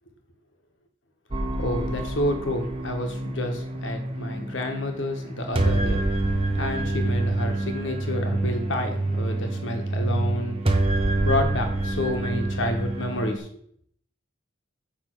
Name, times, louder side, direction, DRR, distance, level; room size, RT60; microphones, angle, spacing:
sound 1, 1.3-13.4, right 2 dB, 30° right, 0.9 m, -27 dB
voice 1, 1.6-6.0 6.5-10.5 11.2-13.5, left 1 dB, 70° left, 4 dB, 1.4 m, -29 dB
9.0 x 3.4 x 6.5 m, 0.64 s
head